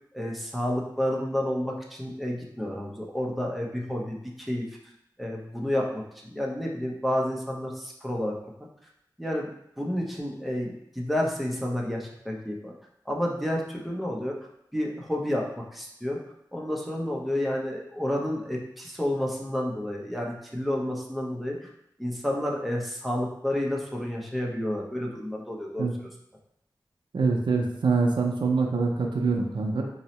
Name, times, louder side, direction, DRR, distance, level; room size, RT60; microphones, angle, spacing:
voice 1, 0.1-4.7 5.2-8.4 9.2-9.5 9.8-12.7 13.1-14.4 14.7-16.2 16.5-21.7 22.0-25.9, left 1 dB, ahead, -2 dB, 0.6 m, -30 dB
voice 2, 27.1-29.8, right 4 dB, 75° right, 2 dB, 0.4 m, -24 dB
2.7 x 2.0 x 4.0 m, 0.75 s
wide cardioid pair, 75°, 8 cm